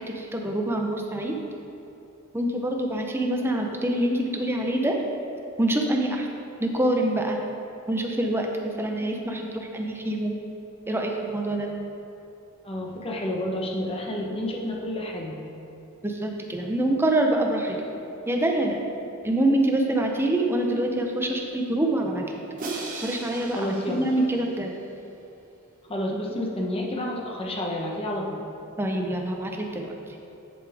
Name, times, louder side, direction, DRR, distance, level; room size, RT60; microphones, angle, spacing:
voice 1, 0.1-1.4 2.3-5.0 5.6-7.4 7.9-10.3 10.9-11.7 16.0-17.8 18.3-18.8 19.2-22.3 22.9-24.7 26.1-26.2 28.8-29.9, right 1 dB, 10° right, 1 dB, 0.7 m, -25 dB
voice 2, 12.6-15.4 23.5-24.1 25.9-28.4, left 1 dB, 25° left, -1 dB, 0.9 m, -30 dB
Crash cymbal, 22.6-24.8, right 3 dB, 40° right, 1.0 m, -37 dB
7.8 x 7.2 x 3.4 m, 2.8 s
head